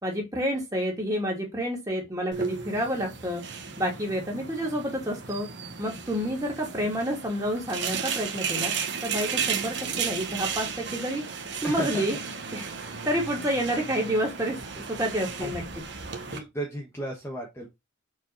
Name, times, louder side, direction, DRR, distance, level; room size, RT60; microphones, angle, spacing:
voice 1, 0.0-3.4 3.8-5.5 5.8-8.7 9.0-11.2 11.6-12.2 12.5-12.7 13.0-15.6, equal, 15° right, 2.7 m, -29 dB
sound 1, 2.3-16.4, right 6 dB, 60° right, 1.4 m, -34 dB
voice 2, 11.6-12.0 15.4-15.5 16.3-17.7, right 1 dB, 15° left, 1.4 m, -34 dB
6.6 x 4.7 x 4.0 m
head